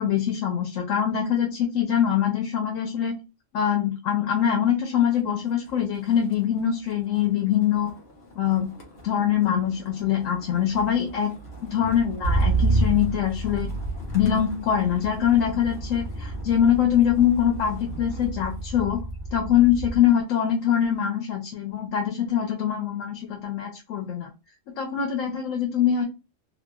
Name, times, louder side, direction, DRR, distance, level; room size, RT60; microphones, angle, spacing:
voice 1, 0.0-3.2 3.5-7.9 8.3-8.7 9.0-11.3 11.6-13.7 14.1-19.0 19.3-24.3 24.7-26.0, left 9 dB, 85° left, 2 dB, 1.0 m, -23 dB
Motor vehicle (road), 5.0-5.3 5.7-20.1 20.5-20.9, right 2 dB, 55° left, 1.0 m, -31 dB
2.8 x 2.2 x 2.3 m, 0.28 s
omnidirectional pair, 1.3 m